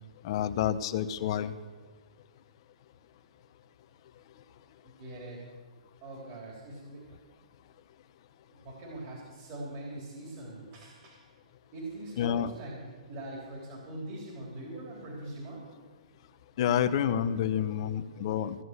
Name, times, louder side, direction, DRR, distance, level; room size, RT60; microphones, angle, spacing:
voice 1, 0.2-1.5 12.2-12.5 16.6-18.6, left 9 dB, 45° left, 12 dB, 0.8 m, -28 dB
voice 2, 4.8-5.5 6.0-7.1 8.4-11.2 11.7-15.7, right 2 dB, 35° right, -2 dB, 3.4 m, -42 dB
15.5 x 7.7 x 8.1 m, 1.5 s
hypercardioid pair, 150°, 4 cm